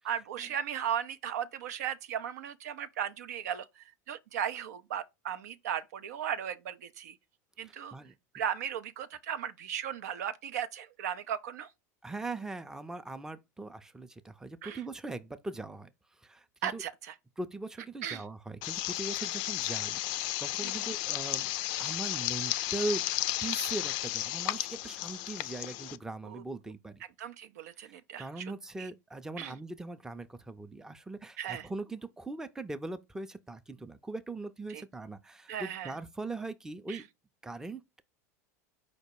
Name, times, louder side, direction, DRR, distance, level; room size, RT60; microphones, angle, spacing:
voice 1, 0.0-7.2 7.6-7.9 8.3-11.7 14.6-14.8 16.6-17.1 18.0-18.2 20.6-20.9 26.2-26.4 27.2-28.5 28.8-28.9 29.4-29.5 31.4-31.7 34.7-34.8 35.5-35.9 36.9-37.0, right 9 dB, 80° right, 0.5 m, -36 dB
voice 2, 7.6-8.1 12.0-15.9 16.2-16.8 17.4-21.5 21.8-23.0 23.4-27.0 27.8-37.0 37.4-37.8, right 2 dB, 5° right, 0.4 m, -40 dB
sound 1, 18.6-26.0, left 16 dB, 55° left, 0.3 m, -33 dB
5.0 x 2.1 x 4.6 m
hypercardioid pair, 95°, 9 cm